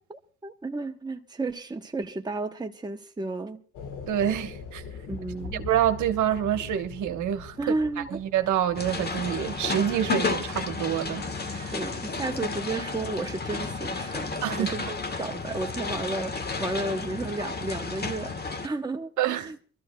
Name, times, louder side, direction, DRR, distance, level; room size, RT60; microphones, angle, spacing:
voice 1, 0.1-3.6 5.1-5.6 7.6-8.2 11.7-14.3 14.6-19.1 19.4-19.6, right 2 dB, 15° right, 1.0 m, -33 dB
sound 1, 3.7-9.9, left 5 dB, 85° left, 1.6 m, -42 dB
voice 2, 4.1-4.8 5.5-7.6 8.3-11.7 14.4-14.7 19.2-19.5, right 10 dB, 75° right, 1.1 m, -27 dB
sound 2, 8.7-18.7, left 4 dB, 35° left, 1.3 m, -32 dB
26.0 x 13.5 x 2.2 m
cardioid pair, 90°, 30 cm